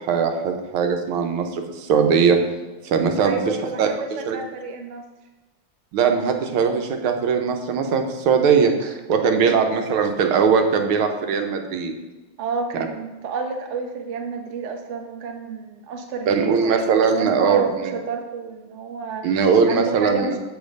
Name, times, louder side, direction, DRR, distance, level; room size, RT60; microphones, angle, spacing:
voice 1, 0.0-2.4 2.8-3.4 3.8-3.9 4.3-4.4 5.9-11.9 12.7-12.9 16.3-18.0 19.2-20.4, right 6 dB, 80° right, 5 dB, 1.6 m, -20 dB
voice 2, 3.2-5.0 9.4-9.6 12.4-16.8 17.1-19.2 19.7-20.4, right 4 dB, 60° right, 3 dB, 0.8 m, -30 dB
7.1 x 4.9 x 5.2 m, 1.1 s
omnidirectional pair, 2.3 m